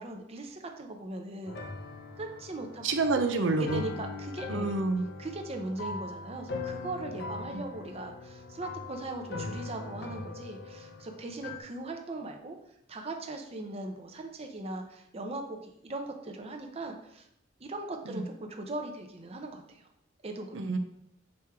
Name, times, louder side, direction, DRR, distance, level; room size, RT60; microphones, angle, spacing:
voice 1, 0.0-1.6 2.2-2.8 3.6-4.8 5.2-12.6 12.9-17.3 17.6-19.9 20.2-20.6, right 2 dB, 35° right, 3 dB, 0.7 m, -39 dB
sound 1, 1.5-11.6, left 3 dB, 60° left, 0.6 m, -41 dB
voice 2, 2.8-3.8 4.5-5.0 7.5-7.6 18.1-18.2 20.5-20.8, right 3 dB, 80° right, 6 dB, 0.6 m, -28 dB
6.2 x 4.5 x 3.5 m, 0.75 s
head